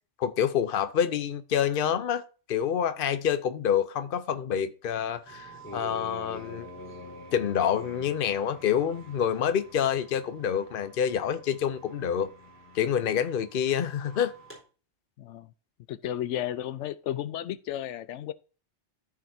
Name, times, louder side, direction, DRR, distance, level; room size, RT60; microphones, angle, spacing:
voice 1, 0.2-2.2 2.5-6.7 7.3-12.3 12.7-14.3, left 8 dB, 55° left, 0.9 m, -27 dB
sound 1, 5.3-14.6, left 1 dB, 10° left, 4.2 m, -46 dB
voice 2, 15.2-15.5 15.9-18.3, left 11 dB, 85° left, 0.9 m, -33 dB
13.5 x 5.0 x 2.7 m
omnidirectional pair, 1.2 m